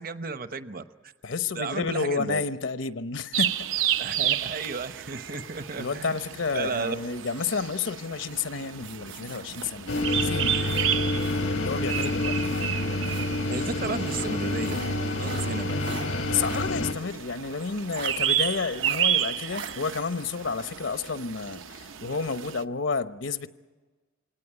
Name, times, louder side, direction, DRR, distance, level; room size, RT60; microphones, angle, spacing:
voice 1, 0.0-1.1 1.5-2.4 4.0-6.2 6.5-7.0 13.5-15.8, right 4 dB, 45° right, 11 dB, 0.8 m, -34 dB
voice 2, 1.2-3.5 5.8-10.6 11.5-12.4 16.3-23.5, left 4 dB, 75° left, 11 dB, 0.9 m, -30 dB
sound 1, 3.3-22.6, right 10 dB, 85° right, 0.8 m, -32 dB
sound 2, 8.8-11.5 11.8-13.4 14.0-16.7 17.1-17.2 17.9-18.2 18.7-19.0 19.5-19.7, right 5 dB, 60° right, 1.6 m, -42 dB
sound 3, 9.9-16.9, left 2 dB, 90° left, 1.4 m, -28 dB
24.5 x 18.0 x 10.0 m, 1.3 s
head